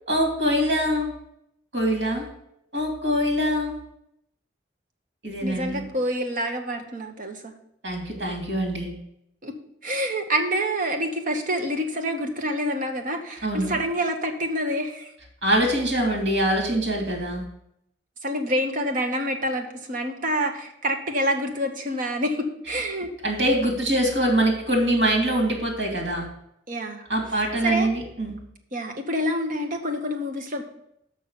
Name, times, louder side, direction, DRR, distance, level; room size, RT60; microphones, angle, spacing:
voice 1, 0.1-1.1 1.7-2.3 2.7-3.8 5.2-5.8 7.8-8.9 13.4-13.7 15.4-17.4 23.2-26.3 27.1-28.4, right 1 dB, 85° right, 1 dB, 2.8 m, -24 dB
voice 2, 5.4-7.5 9.4-9.5 9.8-15.1 18.2-23.1 26.7-27.1 27.6-27.9 28.7-30.6, equal, 45° right, 4 dB, 1.1 m, -27 dB
6.3 x 5.6 x 7.1 m, 0.76 s
head